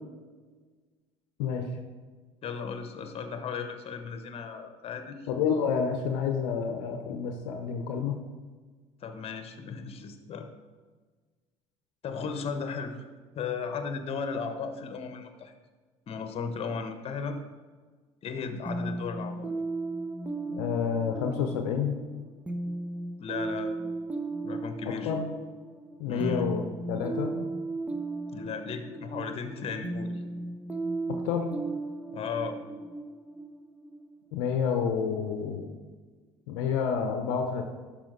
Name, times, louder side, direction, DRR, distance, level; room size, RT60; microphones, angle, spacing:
voice 1, 2.4-5.3 9.0-10.5 12.0-13.1 13.3-15.5 16.1-17.4 18.2-19.5 23.2-23.9 24.4-25.2 26.1-26.5 28.3-30.2 32.1-32.6, left 5 dB, 40° left, 8 dB, 1.1 m, -35 dB
voice 2, 5.3-8.2 18.8-19.0 20.5-22.0 24.8-25.3 26.0-27.4 31.2-31.5 34.3-35.7 36.5-37.6, left 6 dB, 65° left, 5 dB, 0.8 m, -29 dB
sound 1, 18.7-34.2, right 2 dB, 10° right, 0.9 m, -36 dB
12.0 x 5.0 x 3.8 m, 1.4 s
hypercardioid pair, 65°, 15 cm